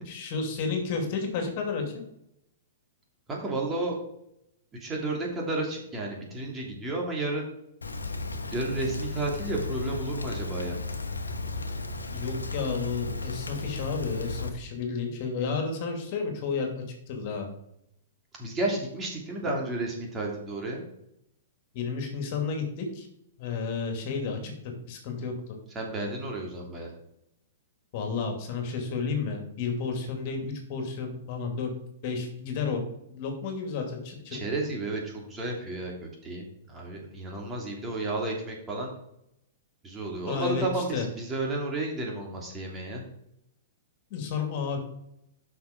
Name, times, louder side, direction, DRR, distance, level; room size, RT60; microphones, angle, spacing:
voice 1, 0.1-1.8 12.1-17.5 21.7-23.1 23.4-24.5 24.9-25.3 27.9-31.7 32.0-32.8 33.1-34.4 40.3-41.1 44.1-44.8, left 5 dB, 50° left, 3 dB, 2.6 m, -31 dB
voice 2, 3.3-4.0 4.7-7.4 8.5-10.8 18.4-20.8 25.7-26.9 34.3-38.9 39.8-43.0, right 2 dB, 20° right, -1 dB, 2.9 m, -32 dB
Rain, 7.8-14.5, left 3 dB, 90° left, 1.1 m, -34 dB
8.1 x 6.2 x 5.3 m, 0.79 s
hypercardioid pair, 110°, 0 cm